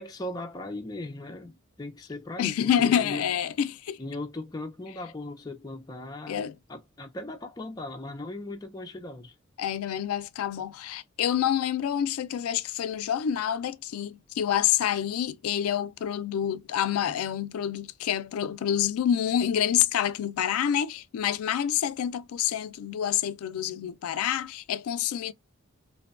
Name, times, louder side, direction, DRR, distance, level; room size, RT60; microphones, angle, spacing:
voice 1, 0.0-1.5 1.8-3.2 4.0-9.3, left 2 dB, 20° left, 0.4 m, -38 dB
voice 2, 2.4-4.0 6.3-6.6 9.6-25.3, left 9 dB, 85° left, 0.3 m, -27 dB
2.6 x 2.2 x 2.3 m
head